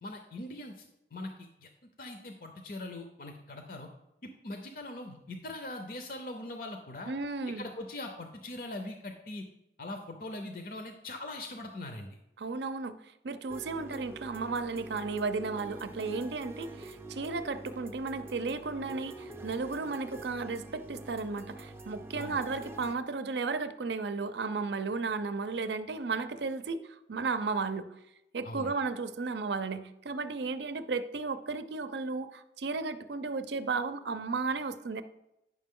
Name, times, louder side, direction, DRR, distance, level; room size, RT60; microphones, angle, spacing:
voice 1, 0.0-0.8 1.1-1.7 2.0-3.9 4.2-7.1 7.5-9.4 9.8-12.2 22.1-22.3 28.4-28.7, left 2 dB, 50° left, 4 dB, 0.6 m, -41 dB
voice 2, 7.1-7.7 12.4-13.0 13.2-27.9 28.3-35.0, right 4 dB, 75° right, 11 dB, 0.5 m, -34 dB
sound 1, 13.5-22.9, right 1 dB, 15° right, 0.5 m, -46 dB
9.5 x 5.9 x 3.7 m, 0.87 s
head